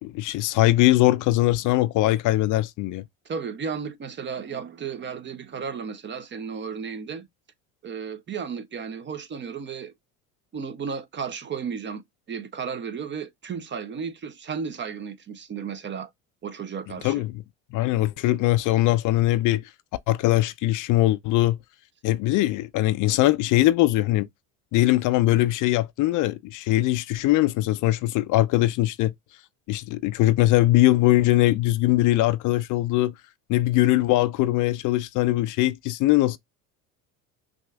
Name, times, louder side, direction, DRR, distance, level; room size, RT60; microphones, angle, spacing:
voice 1, 0.0-3.0 17.0-17.3 17.7-19.6 20.1-21.6 22.0-24.3 24.7-29.1 29.7-33.1 33.5-36.4, left 17 dB, 50° left, 0.5 m, -21 dB
voice 2, 3.3-7.3 7.8-9.9 10.5-12.0 12.3-16.1 16.4-17.2, right 6 dB, 30° right, 0.6 m, -34 dB
6.1 x 2.5 x 2.3 m
supercardioid pair, 90°, 39 cm